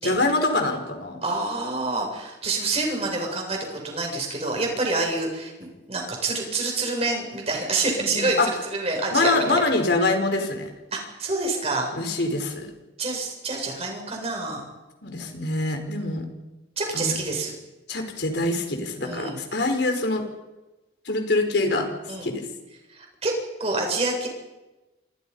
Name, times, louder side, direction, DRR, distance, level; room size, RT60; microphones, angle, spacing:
voice 1, 0.0-1.2 8.1-8.5 9.1-10.7 11.9-12.7 15.0-16.2 16.9-17.1 17.9-20.2 21.0-21.9 22.2-22.5, left 2 dB, 65° left, 5 dB, 5.0 m, -24 dB
voice 2, 1.2-5.5 5.9-9.6 10.9-11.9 13.0-14.6 16.8-17.5 19.0-19.4 22.1-22.3 22.9-23.3 23.6-24.3, right 3 dB, 35° right, 1 dB, 7.8 m, -27 dB
28.0 x 27.5 x 5.7 m, 1.1 s
head